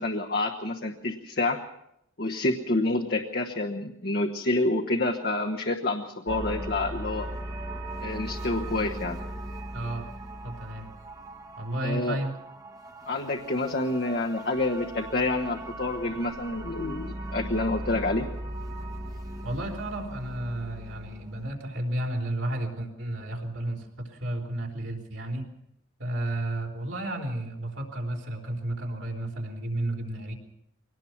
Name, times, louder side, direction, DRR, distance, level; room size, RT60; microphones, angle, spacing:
voice 1, 0.0-1.6 2.2-7.3 8.0-9.2 11.8-12.2 13.1-18.3, left 2 dB, 50° left, 2 dB, 1.3 m, -28 dB
sound 1, 6.3-21.5, right 1 dB, 20° right, 1.3 m, -38 dB
voice 2, 9.7-10.1 10.4-10.9 11.6-12.3 19.4-25.5 26.0-30.3, right 1 dB, 65° right, 1 dB, 4.0 m, -32 dB
23.5 x 18.5 x 6.0 m, 0.78 s
head